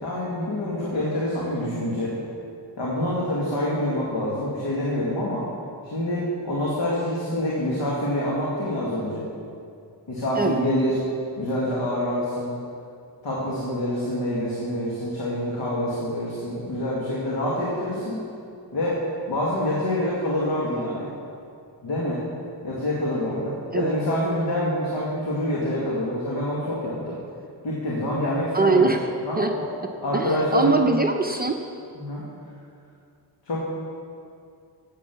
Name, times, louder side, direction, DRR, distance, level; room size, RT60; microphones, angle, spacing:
voice 1, 0.0-2.1 2.8-5.4 5.8-9.3 10.1-11.0 11.4-12.6 13.2-18.2 18.7-19.0 19.3-21.1 21.8-22.2 22.6-27.2 27.6-28.9 29.2-29.7 30.0-30.8 32.0-32.2 33.4-33.6, left 1 dB, 75° left, -6 dB, 2.2 m, -26 dB
voice 2, 28.5-29.1 29.4-29.5 30.1-31.6, right 3 dB, 20° right, 3 dB, 0.6 m, -22 dB
9.2 x 8.2 x 6.9 m, 2.4 s
wide cardioid pair, 100°, 44 cm